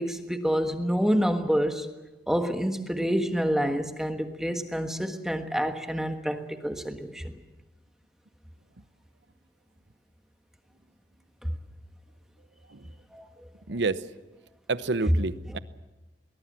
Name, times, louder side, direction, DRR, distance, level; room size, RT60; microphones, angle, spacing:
voice 1, 0.0-1.9 2.3-7.3 13.1-13.3 13.7-13.8, equal, 5° right, 6 dB, 1.4 m, -28 dB
voice 2, 13.7-14.0 14.7-15.6, right 3 dB, 90° right, 14 dB, 0.9 m, -28 dB
22.5 x 20.0 x 7.6 m, 1.1 s
head